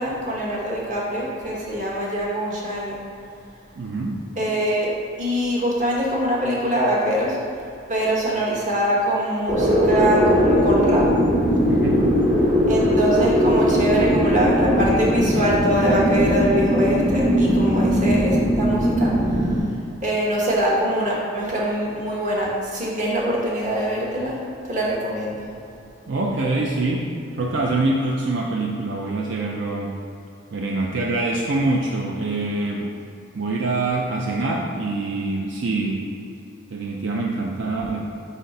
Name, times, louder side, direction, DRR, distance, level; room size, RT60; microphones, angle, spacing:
voice 1, 0.0-3.0 4.4-7.4 7.9-11.1 12.7-19.7 20.0-24.4 24.6-25.5, equal, 40° right, -4 dB, 1.1 m, -23 dB
voice 2, 3.8-4.2 11.7-12.1 26.1-27.1 27.4-30.0 30.5-33.0 33.3-36.1 36.7-38.0, right 2 dB, 70° right, -1 dB, 0.5 m, -25 dB
sound 1, 9.5-19.6, equal, 25° right, 1.4 m, -19 dB
4.9 x 4.2 x 5.2 m, 2.6 s
head